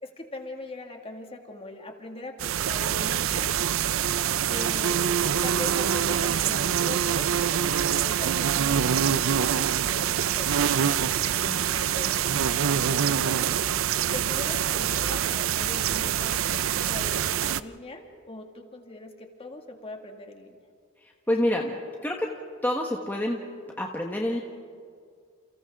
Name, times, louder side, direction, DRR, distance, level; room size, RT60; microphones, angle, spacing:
voice 1, 0.0-3.5 4.4-5.1 5.4-7.8 8.0-12.2 12.6-20.6, left 2 dB, 30° left, 3 dB, 2.2 m, -41 dB
sound 1, 2.4-17.6, right 9 dB, 65° right, 0.5 m, -25 dB
voice 2, 21.0-21.7 22.0-22.3 22.6-23.4 23.8-24.4, left 1 dB, 10° left, 0 dB, 1.4 m, -27 dB
30.0 x 29.5 x 3.7 m, 2.2 s
head